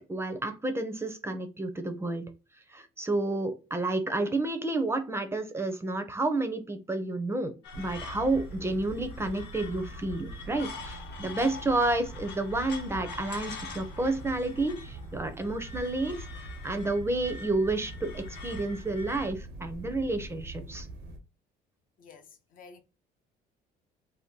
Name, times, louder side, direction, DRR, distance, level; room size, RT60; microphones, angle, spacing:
voice 1, 0.0-2.2 2.7-20.9, right 2 dB, 15° right, 0.5 m, -30 dB
sound 1, 7.6-19.3, left 5 dB, 80° left, 0.9 m, -46 dB
sound 2, 7.7-21.2, right 1 dB, 85° right, 0.7 m, -43 dB
voice 2, 22.0-22.8, left 5 dB, 55° left, 0.6 m, -51 dB
2.7 x 2.2 x 3.6 m
cardioid pair, 110°, 17 cm